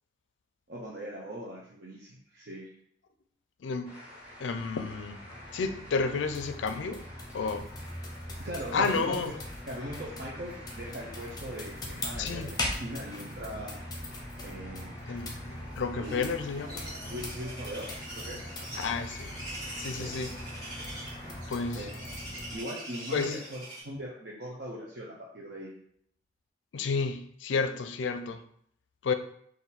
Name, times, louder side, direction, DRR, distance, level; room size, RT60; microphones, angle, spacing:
voice 1, 0.7-2.7 8.4-9.3 9.7-13.8 14.4-15.3 15.9-16.3 17.0-18.4 20.0-20.1 21.8-21.9 22.5-25.7, equal, 60° right, -4 dB, 0.7 m, -40 dB
voice 2, 3.6-4.0 4.4-7.0 7.3-7.7 8.7-9.3 12.2-12.5 15.1-17.1 18.8-19.3 19.8-20.3 20.6-20.7 21.5-21.9 23.1-23.4 26.7-28.4 29.0-29.1, left 4 dB, 90° left, 9 dB, 0.4 m, -31 dB
sound 1, 3.8-21.4, left 1 dB, 5° right, 1.2 m, -50 dB
sound 2, 4.1-22.6, left 1 dB, 20° left, 0.6 m, -41 dB
sound 3, 16.0-23.8, right 1 dB, 25° right, 1.5 m, -43 dB
3.8 x 2.5 x 4.1 m, 0.66 s
head